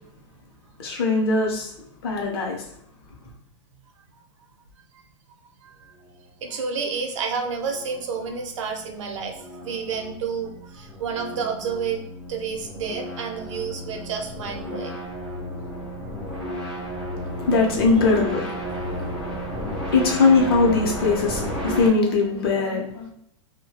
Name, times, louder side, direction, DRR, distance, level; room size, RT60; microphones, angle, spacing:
voice 1, 0.8-1.7 2.0-2.6 17.5-18.4 19.9-23.1, left 4 dB, 50° left, 1 dB, 0.6 m, -20 dB
voice 2, 6.4-12.0 12.3-14.9, right 6 dB, 70° right, 3 dB, 0.6 m, -30 dB
sound 1, 7.3-21.9, equal, 5° left, 0.3 m, -33 dB
2.3 x 2.1 x 2.8 m, 0.72 s
supercardioid pair, 180°, 16 cm